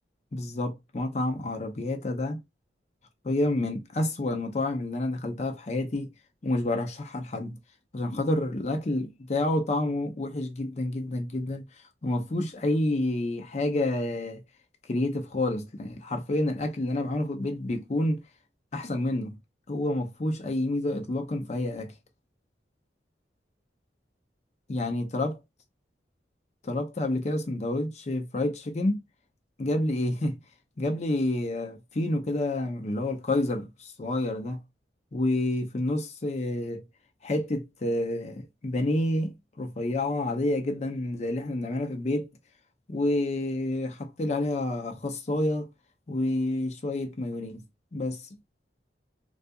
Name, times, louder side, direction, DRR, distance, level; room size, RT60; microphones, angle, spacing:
voice 1, 0.3-2.4 3.2-6.1 6.4-7.6 7.9-11.6 12.0-14.4 14.9-18.2 18.7-19.4 19.7-21.9 24.7-25.3 26.6-29.0 29.6-30.4 30.8-34.6 35.1-36.8 37.2-42.3 42.9-45.7 46.1-47.6 47.9-48.2, left 1 dB, 40° left, 0.5 m, -29 dB
2.4 x 2.3 x 2.6 m
head